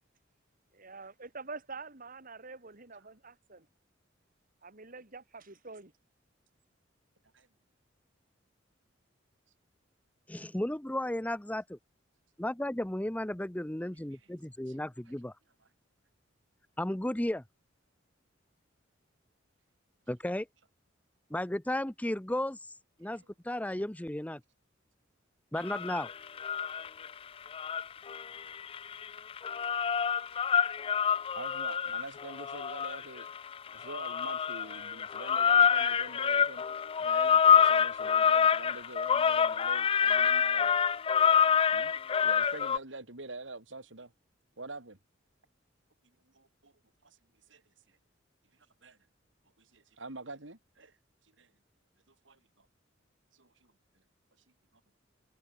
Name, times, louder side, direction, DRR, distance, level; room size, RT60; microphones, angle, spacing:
voice 1, 0.7-3.7 4.6-5.9, right 4 dB, 45° right, 3.1 m, -46 dB
voice 2, 10.3-11.8 12.4-15.3 16.8-17.4 20.1-20.5 21.3-22.6 23.0-24.4 25.5-26.1, left 1 dB, 10° left, 0.7 m, -34 dB
sound 1, 25.6-27.1 27.5-42.8, left 7 dB, 30° left, 0.3 m, -27 dB
voice 3, 31.1-33.3 33.7-36.6 37.0-40.8 41.2-41.9 42.2-44.1 44.6-45.0 46.3-46.7 47.0-47.2 47.5-47.6 48.8-49.0 49.6-50.9 51.4-51.5 52.1-52.7 53.3-53.7, right 2 dB, 70° right, 3.8 m, -46 dB
head